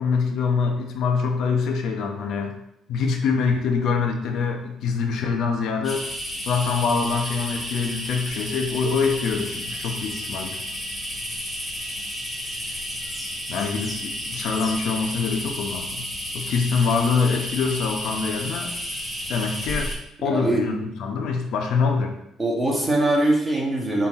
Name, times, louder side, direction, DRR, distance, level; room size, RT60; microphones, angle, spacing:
voice 1, 0.0-2.5 2.9-6.0 6.5-10.6 13.5-16.1 16.3-18.7 19.3-19.9 20.2-22.1, left 5 dB, 70° left, 3 dB, 0.9 m, -24 dB
sound 1, 5.8-19.9, equal, ahead, 1.7 m, -32 dB
voice 2, 20.2-20.6 22.4-24.1, right 1 dB, 15° right, -2 dB, 1.5 m, -22 dB
5.7 x 4.3 x 4.2 m, 0.81 s
cardioid pair, 135°, 0 cm